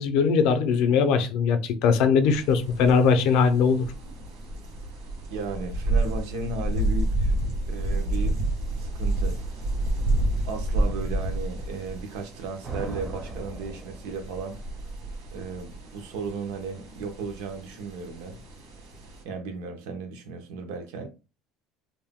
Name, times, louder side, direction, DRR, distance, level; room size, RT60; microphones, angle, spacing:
voice 1, 0.0-3.8, left 5 dB, 60° left, 0.5 m, -21 dB
sound 1, 2.3-19.2, right 2 dB, 70° right, 1.1 m, -30 dB
voice 2, 5.3-7.4 7.7-8.4 8.8-9.4 10.5-14.6 15.3-18.4 19.2-21.1, right 4 dB, 90° right, 0.7 m, -35 dB
sound 2, 12.6-14.6, right 2 dB, 20° right, 0.5 m, -38 dB
2.6 x 2.1 x 3.5 m
cardioid pair, 170°, 0 cm